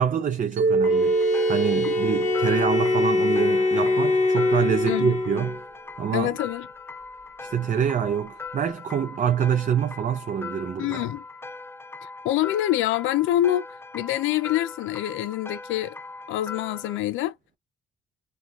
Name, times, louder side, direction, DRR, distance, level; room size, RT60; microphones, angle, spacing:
voice 1, 0.0-5.6 6.0-6.3 7.4-11.1, right 8 dB, 40° right, 0.5 m, -26 dB
Mallet percussion, 0.6-4.7, right 3 dB, 70° right, 1.0 m, -26 dB
Bowed string instrument, 0.8-5.6, left 3 dB, 40° left, 1.1 m, -24 dB
sound 1, 0.8-17.0, left 4 dB, 10° left, 0.4 m, -40 dB
voice 2, 6.1-6.7 10.8-11.2 12.0-13.6 13.9-15.9 16.3-17.3, left 13 dB, 90° left, 0.5 m, -26 dB
4.0 x 2.3 x 2.4 m
cardioid pair, 90°, 20 cm